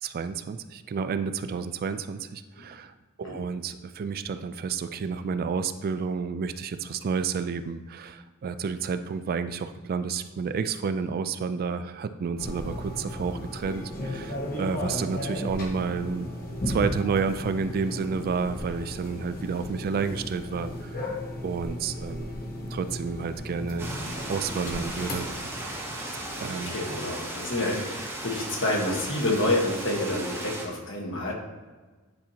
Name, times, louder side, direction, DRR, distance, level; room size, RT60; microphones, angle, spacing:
voice 1, 0.0-16.3 16.6-21.1 21.4-22.3 22.7-25.3 26.4-26.8, right 5 dB, 45° right, 11 dB, 0.3 m, -30 dB
sound 1, 12.4-25.3, left 1 dB, 45° left, 1.0 m, -35 dB
sound 2, 23.8-30.7, right 1 dB, 10° right, 1.0 m, -36 dB
voice 2, 26.5-31.3, left 1 dB, 60° left, -1 dB, 1.4 m, -28 dB
9.7 x 4.2 x 2.9 m, 1.3 s
head